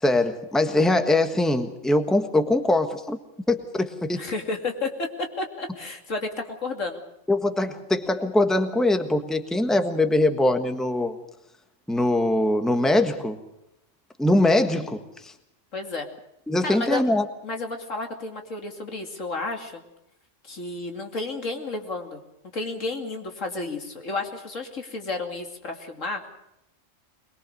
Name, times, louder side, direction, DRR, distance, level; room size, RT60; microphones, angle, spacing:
voice 1, 0.0-3.2 3.5-4.2 7.3-11.2 11.9-13.4 14.2-15.0 16.5-17.2, left 1 dB, ahead, 7 dB, 1.4 m, -22 dB
voice 2, 4.1-7.0 15.7-16.1 16.6-17.0 17.4-19.8 20.4-22.2 22.5-26.3, left 3 dB, 85° left, 3 dB, 3.0 m, -31 dB
22.5 x 22.0 x 6.6 m, 0.84 s
omnidirectional pair, 1.3 m